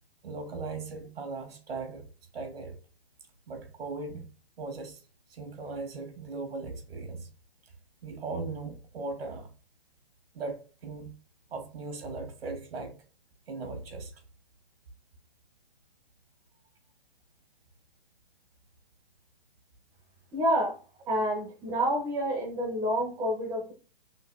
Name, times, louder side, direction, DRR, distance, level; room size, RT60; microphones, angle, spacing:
voice 1, 0.2-2.0 2.3-2.8 3.5-4.3 4.6-5.0 5.3-7.3 8.0-9.5 10.3-11.1 11.5-12.9 13.5-14.1, right 3 dB, 85° right, 1.4 m, -38 dB
voice 2, 20.3-20.8 21.1-23.7, equal, 10° right, 0.8 m, -28 dB
5.9 x 2.5 x 2.4 m
hypercardioid pair, 160°, 30 cm